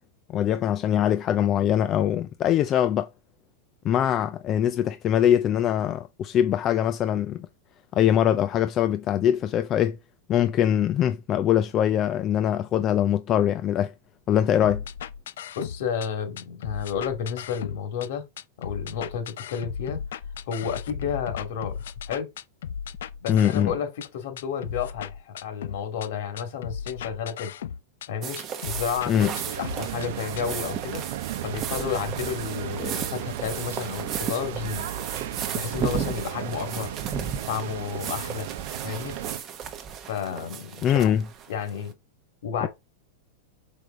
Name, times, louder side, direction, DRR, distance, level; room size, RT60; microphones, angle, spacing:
voice 1, 0.3-3.1 3.8-7.5 7.9-10.0 10.3-13.9 14.3-14.8 23.3-23.7 29.1-29.3 40.8-41.3 42.6-42.7, left 10 dB, 25° left, 0.4 m, -22 dB
sound 1, 14.6-16.1 16.4-18.1 18.4-24.1 24.4-26.1 26.4-28.1 28.4-30.1 30.4-30.5, left 8 dB, 85° left, 0.6 m, -36 dB
voice 2, 15.6-18.2 18.6-20.0 20.5-21.8 22.1-22.3 23.2-27.5 28.1-28.4 28.6-31.0 31.4-34.9 35.5-36.9 37.5-38.5 38.8-39.2 40.1-41.1 41.5-41.9 42.4-42.7, left 7 dB, 55° left, 2.3 m, -31 dB
sound 2, 28.2-41.9, right 8 dB, 20° right, 0.9 m, -35 dB
sound 3, 29.2-39.4, right 11 dB, 60° right, 0.7 m, -35 dB
6.2 x 5.1 x 3.7 m
supercardioid pair, 175°, 0 cm